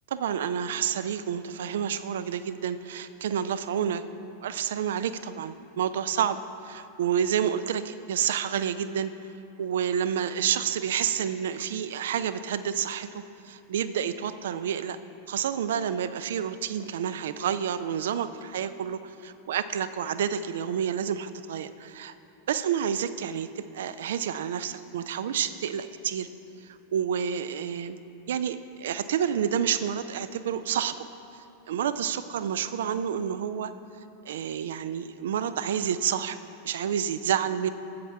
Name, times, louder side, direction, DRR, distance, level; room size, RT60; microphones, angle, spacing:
voice 1, 0.1-9.1 9.6-15.0 15.3-22.1 22.5-26.3 26.6-28.0 28.3-31.1 31.3-33.7 34.3-36.4 36.6-37.7, right 8 dB, 60° right, 13 dB, 0.4 m, -29 dB
12.5 x 8.1 x 3.4 m, 3.0 s
figure-of-eight pair, 90°, 0 cm